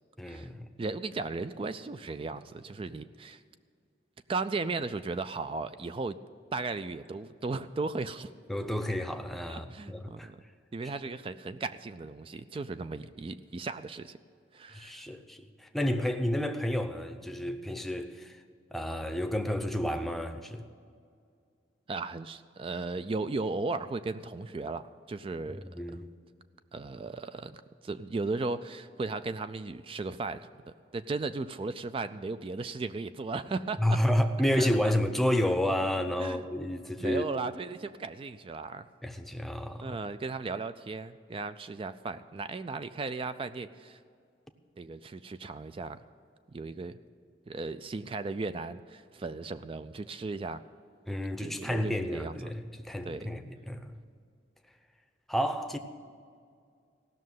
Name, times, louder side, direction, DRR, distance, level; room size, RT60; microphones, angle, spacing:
voice 1, 0.2-0.7 8.5-10.3 14.7-18.4 18.7-20.7 25.6-26.1 33.8-37.2 39.0-40.0 51.1-54.0 55.3-55.8, left 1 dB, ahead, 0.7 m, -30 dB
voice 2, 0.8-3.4 4.3-6.2 6.5-8.3 9.5-10.4 10.7-14.2 14.5-15.0 21.9-25.6 26.7-34.0 34.6-34.9 36.2-36.4 37.0-38.9 39.8-44.0 44.8-46.0 46.5-47.0 47.5-50.6 51.4-52.5 53.0-53.3, right 3 dB, 30° right, 0.3 m, -36 dB
16.0 x 6.4 x 9.3 m
head